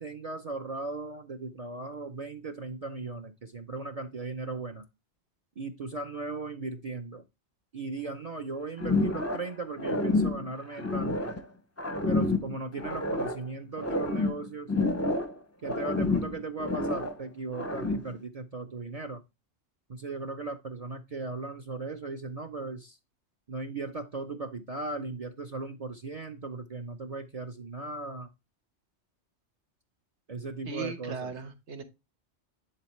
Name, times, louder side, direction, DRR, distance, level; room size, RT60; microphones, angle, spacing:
voice 1, 0.0-4.9 5.6-7.2 7.7-11.4 12.0-14.7 15.6-19.2 19.9-23.0 23.5-28.3 30.3-31.3, right 3 dB, 40° right, 9 dB, 0.6 m, -37 dB
sound 1, 8.8-9.5 9.8-11.4 11.8-13.4 13.8-15.4 15.6-17.2 17.5-18.2, left 2 dB, 20° left, 0.5 m, -29 dB
voice 2, 30.6-31.8, right 4 dB, 85° right, 8 dB, 1.5 m, -37 dB
10.5 x 3.9 x 3.1 m, 0.24 s
omnidirectional pair, 1.1 m